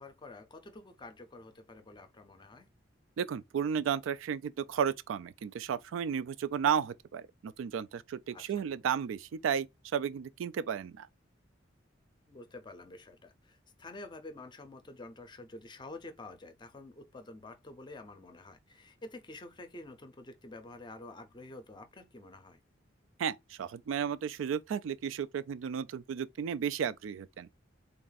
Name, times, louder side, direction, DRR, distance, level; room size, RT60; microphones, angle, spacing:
voice 1, 0.0-2.7 8.3-8.6 12.3-22.6, left 2 dB, 25° left, 0.5 m, -49 dB
voice 2, 3.2-9.7 9.9-11.1 23.2-27.5, right 7 dB, 90° right, 0.3 m, -33 dB
3.4 x 2.5 x 3.9 m
head